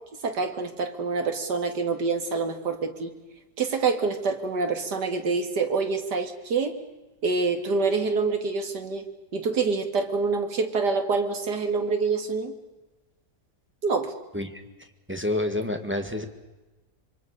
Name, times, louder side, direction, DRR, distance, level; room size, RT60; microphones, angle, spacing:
voice 1, 0.2-3.1 3.6-6.8 7.2-9.1 9.3-12.5 13.8-14.1, right 4 dB, 75° right, 7 dB, 2.6 m, -26 dB
voice 2, 15.1-16.3, left 1 dB, 5° right, 5 dB, 1.7 m, -28 dB
26.5 x 23.5 x 6.6 m, 1.1 s
omnidirectional pair, 1.8 m